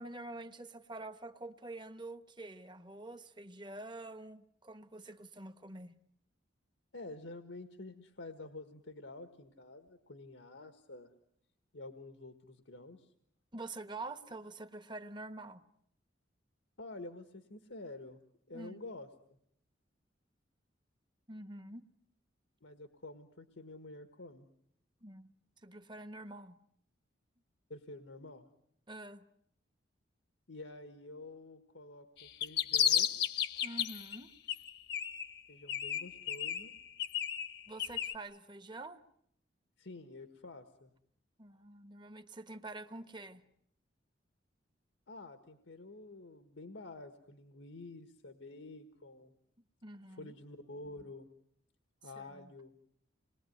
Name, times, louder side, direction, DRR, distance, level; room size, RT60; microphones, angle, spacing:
voice 1, 0.0-6.0 13.5-15.6 18.5-18.8 21.3-21.8 25.0-25.3 25.6-26.6 28.9-29.2 33.6-34.3 37.7-39.0 41.4-43.4 49.8-50.3 52.3-52.5, right 2 dB, 25° right, 1.1 m, -46 dB
voice 2, 6.9-11.1 11.7-13.1 16.8-18.2 18.5-19.4 22.6-24.5 27.7-28.4 30.5-33.1 35.5-36.7 39.8-40.9 45.1-49.3 50.1-51.3 52.0-52.7, left 2 dB, 85° left, 1.5 m, -49 dB
sound 1, 32.2-34.2 34.5-35.4 35.7-38.1, left 9 dB, 60° left, 1.1 m, -33 dB
27.5 x 21.5 x 9.4 m
head